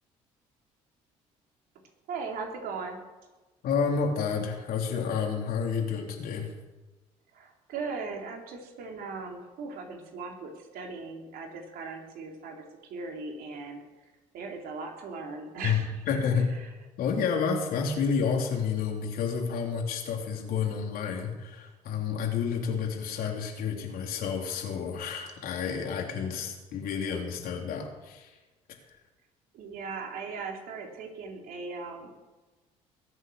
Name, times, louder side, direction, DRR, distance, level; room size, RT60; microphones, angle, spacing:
voice 1, 2.1-3.0 7.3-12.6 12.9-13.8 14.3-16.2 16.5-16.7 29.5-32.1, right 4 dB, 65° right, 1 dB, 3.9 m, -38 dB
voice 2, 3.6-6.5 15.6-16.5 17.0-28.3, left 6 dB, 60° left, 1 dB, 3.6 m, -30 dB
21.5 x 8.1 x 7.0 m, 1.2 s
hypercardioid pair, 60°, 17 cm